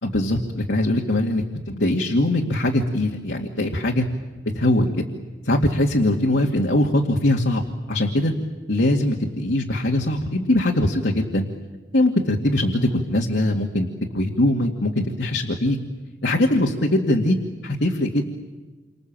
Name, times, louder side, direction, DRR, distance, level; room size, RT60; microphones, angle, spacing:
voice 1, 0.0-4.1 4.5-5.0 5.4-7.6 7.9-8.3 8.7-11.5 11.9-13.9 14.1-15.8 16.2-17.4 17.6-18.2, left 1 dB, 80° left, 0 dB, 2.3 m, -21 dB
28.5 x 26.0 x 7.6 m, 1.3 s
head